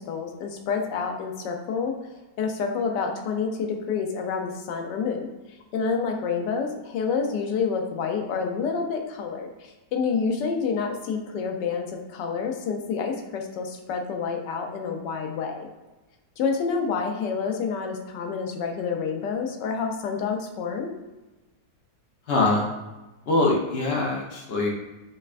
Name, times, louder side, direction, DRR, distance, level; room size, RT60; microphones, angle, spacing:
voice 1, 0.0-1.9 2.4-5.3 5.7-15.7 16.4-20.9, left 5 dB, 85° left, 3 dB, 1.2 m, -28 dB
voice 2, 22.3-22.7 23.3-24.7, left 2 dB, 70° left, -1 dB, 0.5 m, -23 dB
5.4 x 2.2 x 2.4 m, 1.1 s
omnidirectional pair, 1.8 m